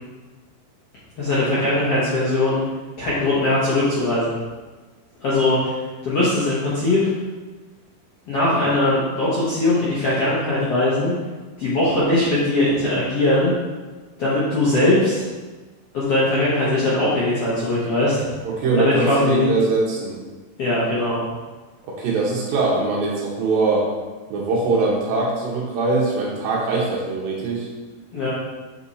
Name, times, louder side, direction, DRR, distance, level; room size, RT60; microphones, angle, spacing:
voice 1, 1.2-2.6 3.0-4.4 5.2-5.8 6.0-7.1 8.3-11.2 11.6-13.5 14.2-15.2 15.9-18.2 18.7-19.5 20.6-21.2 28.1-28.3, left 2 dB, 55° left, -10 dB, 1.7 m, -20 dB
voice 2, 18.4-20.2 21.9-23.9 24.3-27.7, right 3 dB, 70° right, -3 dB, 2.6 m, -22 dB
8.0 x 4.4 x 4.2 m, 1.3 s
omnidirectional pair, 4.7 m